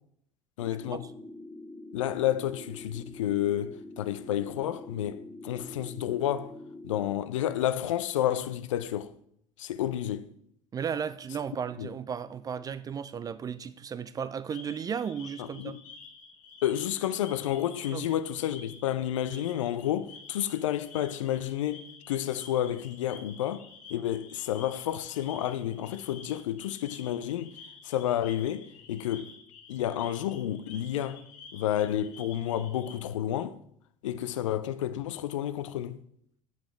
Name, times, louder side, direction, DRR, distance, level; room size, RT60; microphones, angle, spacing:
voice 1, 0.6-1.1 1.9-6.5 6.8-9.1 9.6-10.3 11.8-11.9 15.4-15.8 16.6-27.5 27.8-29.3 29.7-31.2 31.5-33.6 34.0-36.0, left 11 dB, 70° left, 0.5 m, -30 dB
sound 1, 0.6-7.1, left 2 dB, 20° left, 0.6 m, -45 dB
voice 2, 10.7-15.8 17.9-18.0, right 7 dB, 20° right, 0.3 m, -35 dB
sound 2, 14.5-32.9, left 5 dB, 50° left, 1.5 m, -50 dB
7.1 x 5.1 x 4.5 m
figure-of-eight pair, 65°, 17 cm